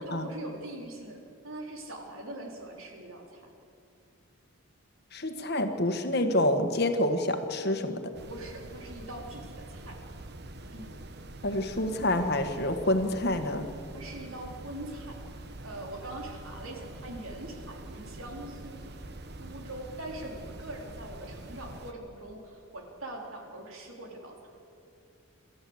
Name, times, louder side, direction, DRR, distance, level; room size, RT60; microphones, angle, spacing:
voice 1, 0.1-1.2 1.4-3.4 8.3-10.0 10.7-10.9 13.9-15.2 15.6-18.9 19.4-24.4, right 1 dB, 75° right, 1 dB, 3.8 m, -42 dB
voice 2, 5.1-8.1 11.4-13.7, left 1 dB, 50° left, 7 dB, 1.5 m, -27 dB
sound 1, 8.1-21.9, right 2 dB, 50° right, 1.1 m, -45 dB
26.5 x 13.5 x 8.0 m, 2.5 s
head